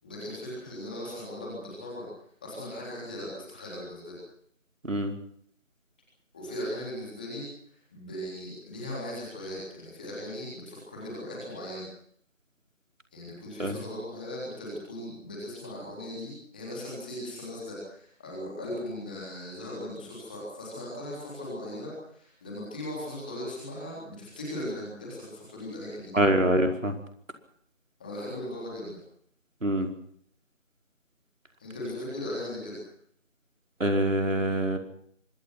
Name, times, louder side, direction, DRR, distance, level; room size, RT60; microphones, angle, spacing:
voice 1, 0.0-2.0 2.4-4.2 6.3-7.4 7.9-11.9 13.1-26.1 28.0-29.0 31.6-32.8, left 1 dB, 5° left, -4 dB, 3.6 m, -38 dB
voice 2, 26.1-27.0 29.6-29.9 33.8-34.8, right 1 dB, 80° right, 5 dB, 5.1 m, -25 dB
25.0 x 21.0 x 5.9 m, 0.63 s
figure-of-eight pair, 175°, 38 cm